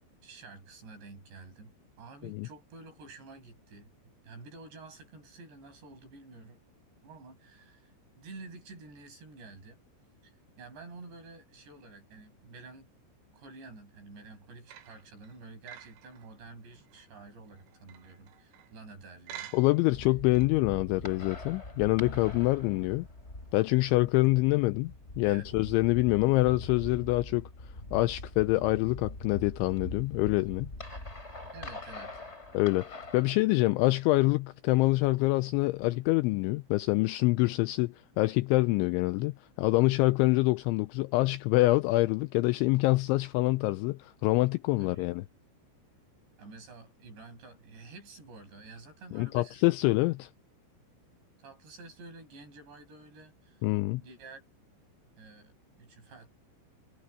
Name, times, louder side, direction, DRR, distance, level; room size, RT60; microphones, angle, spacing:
voice 1, 0.2-6.6 7.0-9.8 10.2-12.9 13.3-19.5 25.2-25.5 31.5-32.2 44.8-45.1 46.4-49.6 51.4-53.7 54.0-54.4 55.2-56.3, right 3 dB, 60° right, 8.4 m, -50 dB
sound 1, 14.7-18.8 19.3-20.0 20.4-20.5, right 11 dB, 75° right, 4.2 m, -49 dB
voice 2, 19.5-23.1 23.5-30.7 32.5-45.2 49.1-50.3 53.6-54.0, left 21 dB, 85° left, 2.7 m, -26 dB
sound 2, 19.9-33.3, left 2 dB, 15° left, 4.4 m, -43 dB
omnidirectional pair, 5.8 m